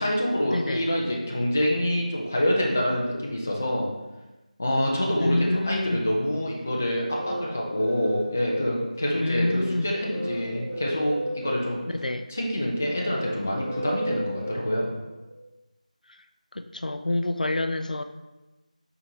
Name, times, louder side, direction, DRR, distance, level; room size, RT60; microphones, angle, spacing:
voice 1, 0.0-3.9 4.6-11.9 12.3-14.9, equal, 15° left, -2 dB, 0.4 m, -26 dB
voice 2, 0.5-0.8 5.2-6.1 9.2-9.9 11.9-12.3 16.5-18.0, left 1 dB, 85° left, 8 dB, 0.4 m, -27 dB
sound 1, 6.6-15.3, equal, 15° right, 1.4 m, -35 dB
4.5 x 3.6 x 2.7 m, 1.1 s
figure-of-eight pair, 175°, 4 cm